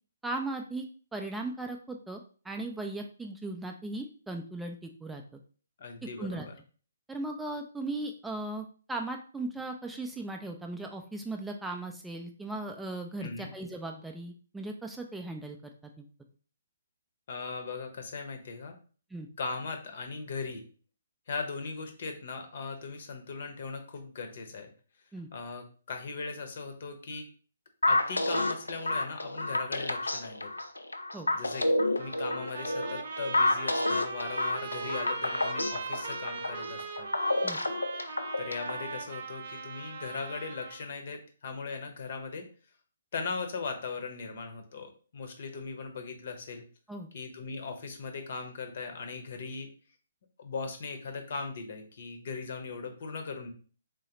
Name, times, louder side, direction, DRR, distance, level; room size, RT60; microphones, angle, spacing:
voice 1, 0.2-0.9 1.1-5.2 6.2-6.5 7.1-15.6 16.0-16.1 19.1-19.3 25.1-25.3 31.1-31.3 37.4-37.6 46.9-47.1, right 2 dB, 5° right, 3 dB, 0.4 m, -37 dB
voice 2, 5.8-6.6 13.2-13.5 17.3-18.8 19.4-20.6 21.3-24.7 25.3-27.3 27.9-30.5 31.3-31.6 32.0-37.1 38.4-42.5 43.1-46.6 47.1-49.7 50.4-53.5, left 4 dB, 55° left, 6 dB, 0.9 m, -39 dB
sound 1, 27.8-38.9, left 2 dB, 85° left, 0.5 m, -30 dB
Trumpet, 32.0-40.9, right 4 dB, 50° right, 0.6 m, -40 dB
3.8 x 3.1 x 2.9 m, 0.40 s
figure-of-eight pair, 135°, 0 cm